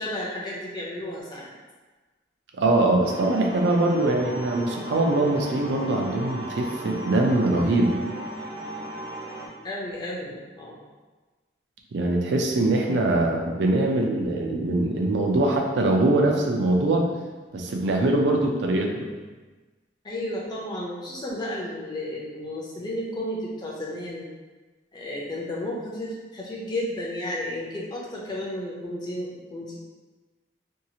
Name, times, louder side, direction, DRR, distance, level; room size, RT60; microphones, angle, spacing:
voice 1, 0.0-1.5 9.6-10.8 20.0-24.3 24.9-29.7, left 1 dB, 25° left, -4 dB, 0.5 m, -33 dB
voice 2, 2.6-8.0 11.9-17.1 17.5-19.1, right 2 dB, 80° right, 1 dB, 0.4 m, -22 dB
sound 1, 3.0-9.5, right 1 dB, 30° right, 0.5 m, -36 dB
2.7 x 2.4 x 2.8 m, 1.3 s
head